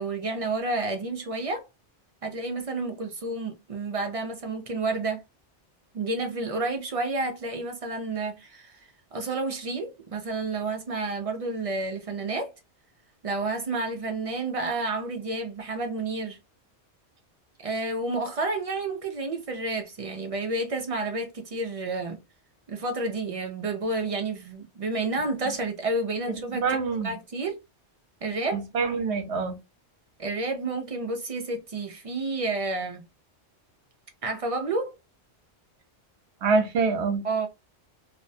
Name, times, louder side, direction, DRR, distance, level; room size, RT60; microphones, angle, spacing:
voice 1, 0.0-1.7 2.2-5.2 5.9-12.5 13.2-16.4 17.6-22.2 22.7-26.7 27.0-27.6 28.2-28.6 30.2-33.0 34.2-35.0 37.2-37.5, right 3 dB, 55° right, 0.3 m, -30 dB
voice 2, 26.3-27.1 28.5-29.6 36.4-37.2, right 4 dB, 75° right, 1.0 m, -26 dB
2.5 x 2.1 x 2.5 m
omnidirectional pair, 1.2 m